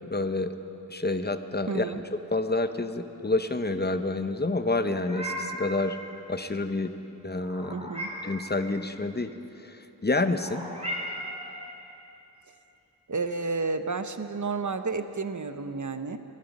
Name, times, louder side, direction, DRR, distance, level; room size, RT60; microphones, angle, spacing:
voice 1, 0.0-0.5 0.9-1.9 2.3-6.0 6.3-6.9 7.2-7.9 8.2-9.3 9.6-10.6, left 2 dB, 25° left, 9 dB, 0.7 m, -28 dB
voice 2, 1.7-2.0 7.7-8.1 13.1-16.2, right 4 dB, 45° right, 9 dB, 0.8 m, -31 dB
Meow, 4.8-5.7 7.4-8.4 10.4-11.5, equal, 15° right, 2.8 m, -36 dB
23.5 x 11.0 x 5.3 m, 2.9 s
wide cardioid pair, 40°, 40 cm